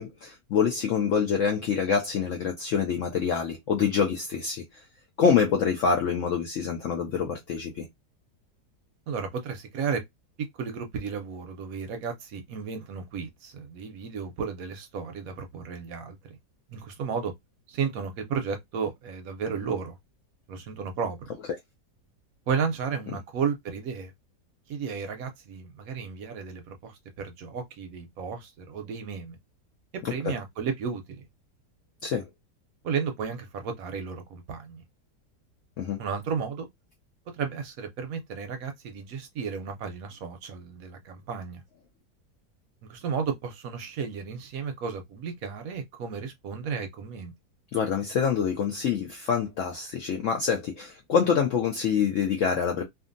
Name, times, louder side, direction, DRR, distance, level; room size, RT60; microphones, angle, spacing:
voice 1, 0.0-4.6 5.2-7.9 30.0-30.1 32.0-32.3 35.8-36.0 47.7-52.8, left 6 dB, 75° left, 0.7 m, -26 dB
voice 2, 9.1-10.0 10.5-16.4 16.7-17.3 17.7-20.0 20.5-21.2 22.5-24.1 24.7-29.4 29.9-31.3 32.8-34.8 36.0-36.7 37.3-41.6 42.8-47.3, right 6 dB, 70° right, 0.9 m, -33 dB
2.6 x 2.5 x 2.5 m
omnidirectional pair, 1.8 m